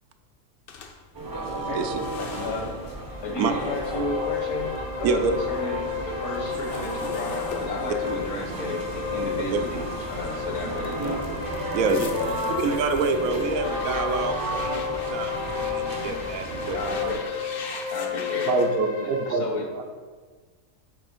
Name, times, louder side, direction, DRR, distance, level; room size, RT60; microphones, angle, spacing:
sound 1, 0.7-4.9 5.3-10.2 10.8-18.8, left 4 dB, 55° left, 0.7 m, -42 dB
sound 2, 1.1-17.1, right 1 dB, 25° right, 0.5 m, -33 dB
voice 1, 1.4-2.0 3.4-3.5 5.0-5.3 9.5-9.6 11.7-12.1 12.6-17.0 18.3-18.4, right 5 dB, 85° right, 7 dB, 1.0 m, -27 dB
voice 2, 2.2-2.8 3.2-5.2 5.5-11.2 11.8-12.8 16.7-17.2 17.9-18.6 19.0-19.7, left 1 dB, 70° left, 1 dB, 1.4 m, -33 dB
sound 3, 3.0-19.3, left 8 dB, 90° left, 1.4 m, -33 dB
voice 3, 18.5-19.4 19.7-19.8, right 3 dB, 55° right, 5 dB, 0.8 m, -25 dB
6.8 x 3.4 x 5.1 m, 1.4 s
omnidirectional pair, 1.4 m